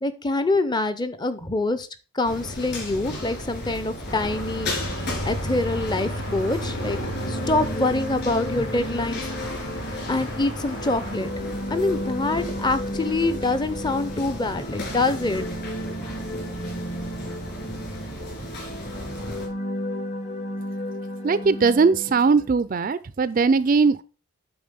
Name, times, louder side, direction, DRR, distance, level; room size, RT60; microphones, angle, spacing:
voice 1, 0.0-1.9 2.1-4.7 5.2-7.0 7.3-9.2 10.1-11.3 11.7-15.5, left 2 dB, 20° left, 0.5 m, -25 dB
sound 1, 2.2-19.5, left 1 dB, 50° left, 3.8 m, -35 dB
sound 2, 4.1-11.2, equal, 75° left, 3.8 m, -34 dB
sound 3, 6.8-22.5, equal, 35° left, 0.9 m, -34 dB
voice 2, 21.2-24.0, right 4 dB, 40° right, 0.4 m, -20 dB
8.7 x 4.0 x 5.2 m
head